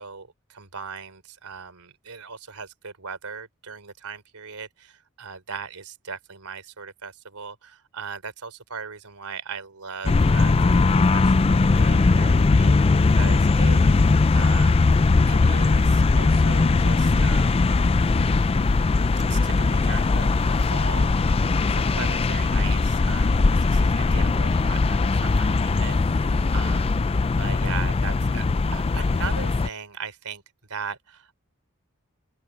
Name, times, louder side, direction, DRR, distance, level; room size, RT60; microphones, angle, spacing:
voice 1, 0.0-15.0 15.3-17.8 19.2-27.1 27.4-28.5 28.7-30.4 30.7-31.4, right 5 dB, 75° right, 3.6 m, -38 dB
sound 1, 10.0-29.7, left 3 dB, 25° left, 0.4 m, -20 dB
open air
head